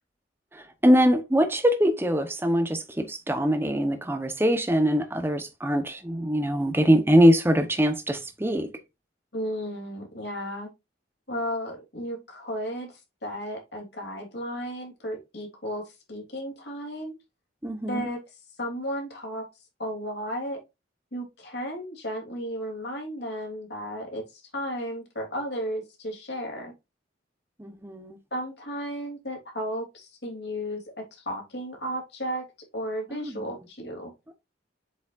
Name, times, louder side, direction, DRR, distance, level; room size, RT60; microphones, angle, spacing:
voice 1, 0.5-8.7 17.6-18.1 27.6-28.2 33.1-33.5, equal, 10° right, 1.0 m, -23 dB
voice 2, 9.3-10.7 11.3-17.1 17.9-18.2 18.6-19.4 19.8-20.6 21.1-26.7 28.3-30.8 31.1-32.4 32.7-34.1, equal, 60° left, 3.1 m, -34 dB
8.2 x 5.1 x 2.6 m
head